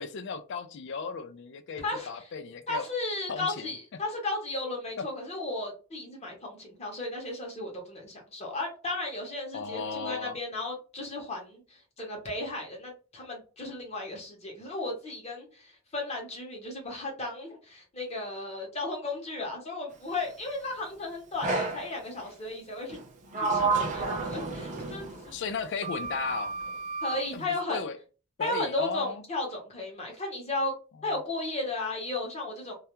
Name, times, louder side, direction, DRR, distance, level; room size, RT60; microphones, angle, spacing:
voice 1, 0.0-2.8 3.3-3.7 9.5-10.4 25.3-26.5 27.3-28.0 28.4-29.2, left 5 dB, 55° left, 0.3 m, -35 dB
voice 2, 1.8-2.3 2.7-23.0 23.4-25.3 27.0-27.9 28.4-30.7 31.0-32.7, left 2 dB, 30° left, 0.8 m, -35 dB
Sliding door, 21.4-21.9 22.9-25.3 25.8-27.2, right 3 dB, 35° right, 0.5 m, -31 dB
2.3 x 2.1 x 2.9 m
head